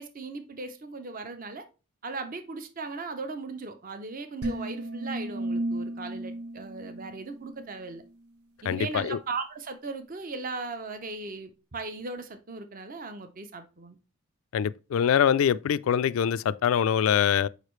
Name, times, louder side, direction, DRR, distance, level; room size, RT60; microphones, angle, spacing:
voice 1, 0.0-1.6 2.0-8.0 8.6-14.0, right 3 dB, 40° right, 0.6 m, -38 dB
sound 1, 4.4-7.8, right 1 dB, 90° right, 0.8 m, -34 dB
voice 2, 8.7-9.2 14.5-17.5, left 8 dB, 70° left, 0.3 m, -24 dB
6.6 x 5.0 x 3.1 m
head